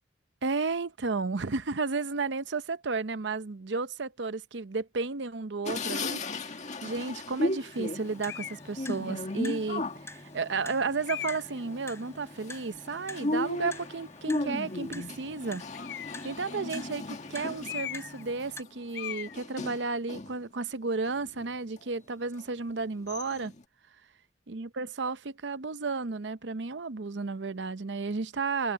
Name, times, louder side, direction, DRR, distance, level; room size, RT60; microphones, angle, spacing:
voice 1, 0.4-15.6 16.2-23.5 24.5-28.7, right 4 dB, 75° right, 0.7 m, -33 dB
sound 1, 5.7-20.4 20.9-21.8 22.4-22.5 22.8-23.6, left 2 dB, 40° left, 1.7 m, -36 dB
Clock, 7.7-18.6, left 2 dB, 15° left, 3.7 m, -48 dB
sound 2, 8.3-8.7 9.5-9.6 11.1-11.6 15.7-16.3 17.6-18.2 18.5-18.7 18.9-19.4, left 12 dB, 65° left, 0.4 m, -38 dB
head